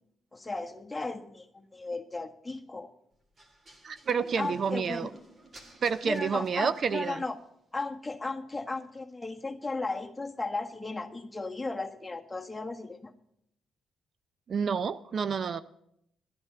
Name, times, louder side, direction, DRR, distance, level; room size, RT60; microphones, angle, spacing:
voice 1, 0.3-2.9 4.3-5.1 6.0-7.4 7.7-13.1, left 3 dB, 15° left, 4 dB, 1.4 m, -35 dB
sound 1, 3.4-7.3, right 1 dB, 35° right, 2.5 m, -54 dB
voice 2, 3.8-5.1 5.8-7.2 14.5-15.6, right 6 dB, 50° right, 15 dB, 0.5 m, -29 dB
12.0 x 10.5 x 6.8 m, 0.73 s
cardioid pair, 90°, 0 cm